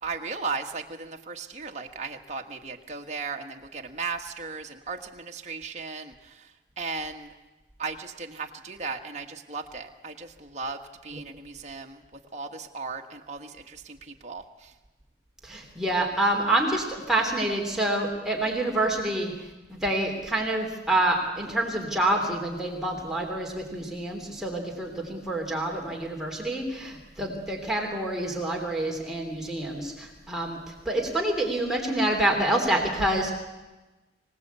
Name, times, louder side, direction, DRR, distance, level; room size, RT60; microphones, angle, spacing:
voice 1, 0.0-7.3 7.8-14.7, right 4 dB, 35° right, 3 dB, 1.6 m, -36 dB
voice 2, 15.4-19.3 19.7-30.6 30.9-33.3, right 1 dB, ahead, -1 dB, 3.4 m, -27 dB
25.5 x 18.5 x 8.3 m, 1.1 s
head